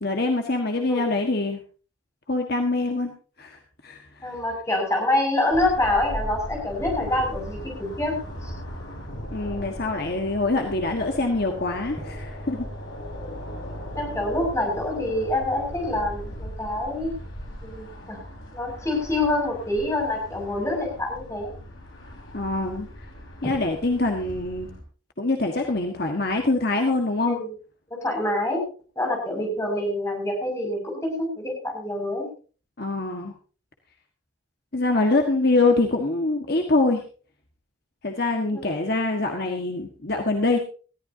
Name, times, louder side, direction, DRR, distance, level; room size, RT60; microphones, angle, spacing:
voice 1, 0.0-1.6 2.3-3.1 3.4-4.2 9.3-12.6 22.3-22.9 23.4-24.7 25.2-27.4 32.8-33.3 34.7-37.0 38.0-40.6, left 2 dB, 50° left, 3 dB, 1.6 m, -24 dB
voice 2, 4.2-8.2 8.4-8.5 13.1-13.3 13.9-17.1 17.6-18.2 18.5-21.5 27.2-27.5 27.9-28.6 29.0-32.2 38.5-38.6, left 1 dB, 15° left, 0 dB, 6.3 m, -26 dB
sound 1, 5.5-24.8, equal, 70° left, 4.9 m, -38 dB
20.0 x 14.5 x 2.8 m, 0.37 s
head